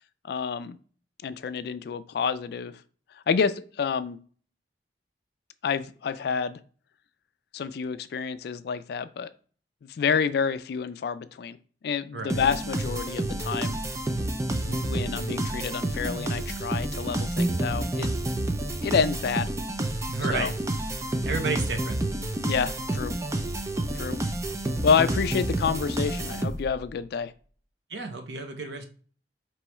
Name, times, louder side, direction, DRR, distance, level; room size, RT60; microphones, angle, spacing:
voice 1, 0.2-0.7 1.2-2.7 3.3-4.2 5.6-6.6 7.5-9.3 9.8-11.6 11.8-13.8 14.7-18.1 18.8-19.5 20.3-20.5 22.4-23.1 23.9-24.2 24.8-27.3, left 6 dB, 60° left, 13 dB, 0.3 m, -28 dB
sound 1, 12.3-26.9, right 1 dB, 15° right, 0.4 m, -29 dB
voice 2, 20.1-20.5 21.2-22.0 27.9-28.8, right 3 dB, 75° right, 5 dB, 0.7 m, -32 dB
4.6 x 3.0 x 3.0 m, 0.42 s
head